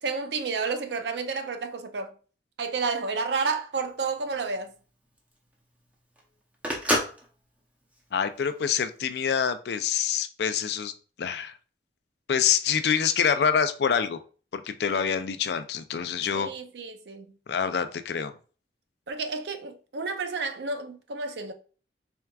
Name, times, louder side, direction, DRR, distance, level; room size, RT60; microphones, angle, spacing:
voice 1, 0.0-2.1 2.6-4.7 14.9-15.1 16.3-17.4 19.1-21.5, right 4 dB, 75° right, 0.6 m, -31 dB
Telephone, 3.7-9.0, equal, 10° right, 0.7 m, -32 dB
voice 2, 8.1-10.9 11.2-11.5 12.3-14.2 14.5-16.5 17.5-18.3, left 7 dB, 65° left, 0.4 m, -26 dB
4.5 x 3.4 x 2.3 m
head